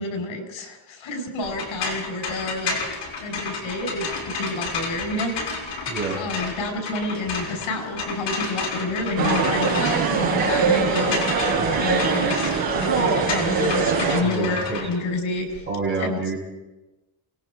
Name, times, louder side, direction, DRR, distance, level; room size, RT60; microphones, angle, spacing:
voice 1, 0.0-5.6 6.2-15.7 16.0-16.2, left 2 dB, 85° left, 5 dB, 5.4 m, -29 dB
sound 1, 1.4-15.6, left 4 dB, 60° left, 6.9 m, -31 dB
voice 2, 5.9-6.2 13.2-13.4 14.2-14.8 15.7-16.4, right 4 dB, 25° right, -2 dB, 7.8 m, -28 dB
sound 2, 9.2-14.2, right 5 dB, 50° right, 5.5 m, -22 dB
28.0 x 20.0 x 5.0 m, 1.1 s
cardioid pair, 180°, 46 cm